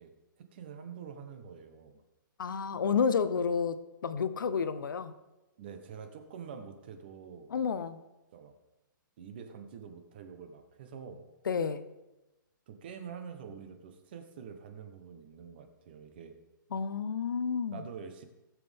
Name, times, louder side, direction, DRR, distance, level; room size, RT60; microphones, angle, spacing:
voice 1, 0.0-2.0 5.6-7.6 8.3-8.6 9.2-11.2 12.7-16.4 17.7-18.2, right 6 dB, 30° right, 7 dB, 1.0 m, -46 dB
voice 2, 2.4-5.1 7.5-8.0 11.5-11.8 16.7-17.8, left 6 dB, 70° left, 12 dB, 0.9 m, -30 dB
18.0 x 7.4 x 3.5 m, 1.0 s
hypercardioid pair, 180°, 11 cm